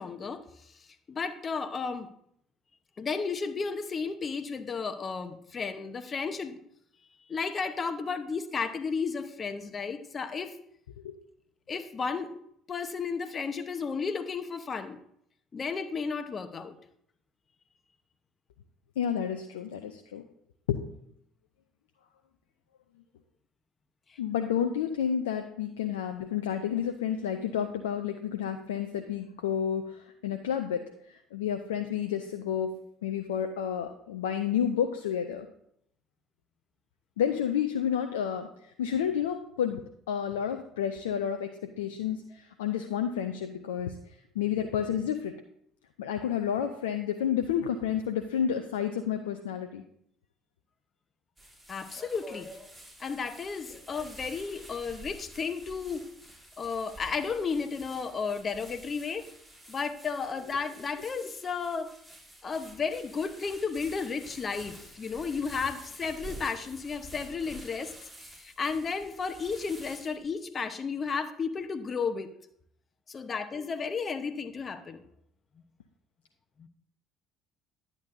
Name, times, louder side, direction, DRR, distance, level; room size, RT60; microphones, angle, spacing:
voice 1, 0.0-2.1 3.0-6.6 7.3-10.6 11.7-12.4 12.7-15.0 15.5-16.7 24.1-24.2 51.7-52.5 53.0-56.1 56.6-59.3 59.7-61.9 62.4-72.3 73.1-75.0 76.6-76.7, left 5 dB, 35° left, 10 dB, 0.8 m, -33 dB
voice 2, 19.0-20.3 20.7-20.8 24.2-35.5 37.2-45.3 46.0-49.8, left 8 dB, 80° left, 6 dB, 0.4 m, -30 dB
sound 1, 51.4-70.3, right 1 dB, 20° right, 3.0 m, -49 dB
10.5 x 8.4 x 2.6 m, 0.70 s
hypercardioid pair, 60°, 0 cm